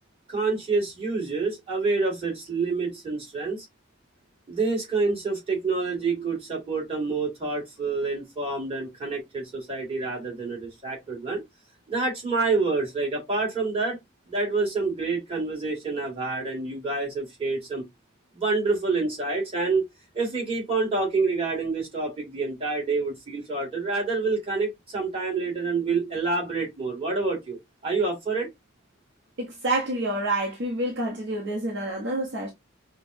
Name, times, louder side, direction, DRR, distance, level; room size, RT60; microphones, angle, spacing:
voice 1, 0.3-3.7 4.5-11.4 11.9-14.0 14.3-17.8 18.3-19.9 20.1-27.6 27.8-28.5, right 3 dB, 25° right, 2.0 m, -27 dB
voice 2, 29.4-32.5, right 1 dB, 55° right, 0.8 m, -28 dB
5.3 x 2.1 x 2.6 m
head